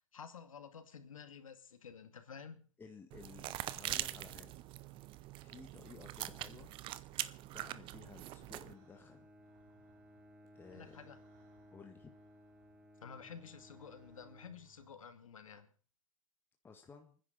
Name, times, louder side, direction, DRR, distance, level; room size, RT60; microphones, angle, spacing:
voice 1, 0.1-2.6 10.7-11.2 13.0-15.7, left 6 dB, 80° left, 7 dB, 2.3 m, -51 dB
voice 2, 2.8-4.5 5.3-6.8 7.5-9.3 10.5-11.1 11.7-12.1 16.6-17.2, left 5 dB, 10° left, 3 dB, 1.6 m, -55 dB
sound 1, 3.1-8.7, right 15 dB, 30° right, 0.8 m, -43 dB
sound 2, 6.8-14.9, right 8 dB, 45° right, 4.1 m, -71 dB
Bowed string instrument, 8.6-15.3, equal, 5° right, 2.5 m, -61 dB
28.5 x 10.5 x 4.1 m, 0.40 s
hypercardioid pair, 120°, 17 cm